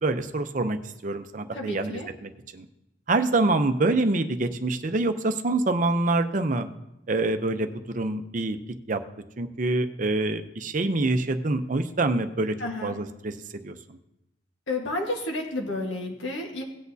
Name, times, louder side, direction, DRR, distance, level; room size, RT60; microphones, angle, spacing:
voice 1, 0.0-2.7 3.1-6.7 7.1-8.6 8.9-9.0 9.4-12.5 12.8-13.4 13.6-13.7, right 2 dB, 40° right, 8 dB, 0.6 m, -26 dB
voice 2, 1.5-2.1 12.6-12.9 14.7-16.6, left 2 dB, 75° left, 0 dB, 1.4 m, -31 dB
17.5 x 8.2 x 2.7 m, 0.90 s
head